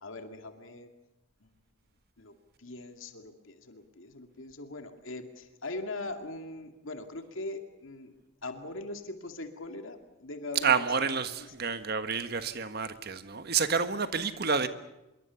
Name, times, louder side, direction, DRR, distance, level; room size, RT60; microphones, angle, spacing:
voice 1, 0.0-0.9 1.4-1.5 2.2-2.3 2.6-8.1 8.4-10.8, left 2 dB, 75° left, 2.4 m, -41 dB
voice 2, 10.6-14.7, right 5 dB, 50° right, 1.4 m, -29 dB
25.5 x 23.0 x 7.0 m
head